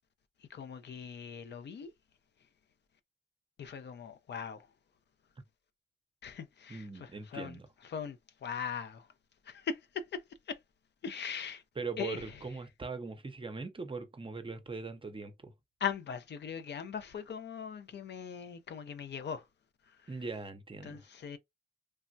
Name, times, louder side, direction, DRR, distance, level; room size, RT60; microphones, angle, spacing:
voice 1, 0.4-1.9 3.6-4.7 6.2-9.1 9.4-10.6 11.0-11.6 12.0-12.5 15.8-19.5 19.8-20.2 20.8-21.4, left 7 dB, 60° left, 0.5 m, -40 dB
voice 2, 6.7-7.6 11.8-15.5 20.1-21.0, right 4 dB, 25° right, 0.6 m, -41 dB
3.3 x 2.1 x 2.5 m
cardioid pair, 90°, 20 cm